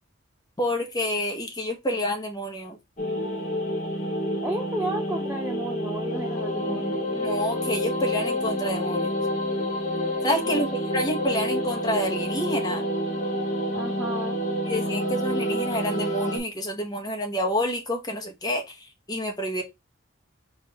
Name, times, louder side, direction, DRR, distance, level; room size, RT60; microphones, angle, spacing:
voice 1, 0.6-2.8 7.2-9.1 10.2-12.8 14.7-19.6, equal, 20° left, 0.9 m, -28 dB
sound 1, 3.0-16.4, equal, 35° left, 1.2 m, -28 dB
voice 2, 4.4-7.0 10.4-10.6 13.7-14.4, right 1 dB, 10° right, 0.4 m, -32 dB
4.3 x 2.5 x 4.4 m
head